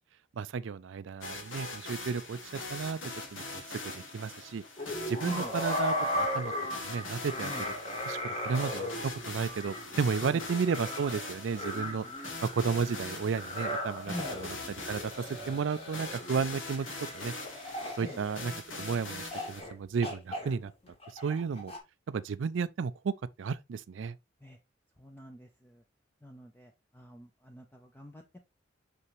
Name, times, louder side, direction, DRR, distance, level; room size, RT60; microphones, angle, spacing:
voice 1, 0.4-3.0 3.3-4.6 5.1-7.7 8.0-12.1 12.4-16.9 17.1-17.3 17.7-18.5 18.8-20.7 21.1-21.7 22.1-24.2, right 5 dB, 70° right, 0.4 m, -33 dB
sound 1, 1.2-19.6, left 2 dB, 80° left, 2.3 m, -42 dB
sound 2, 4.8-18.8 19.3-19.7 20.0-21.8, left 1 dB, 30° left, 2.1 m, -37 dB
voice 2, 14.1-14.4 18.0-18.2 24.4-24.6 25.0-25.7 26.2-28.4, left 1 dB, 10° left, 0.6 m, -44 dB
6.1 x 5.5 x 3.1 m
head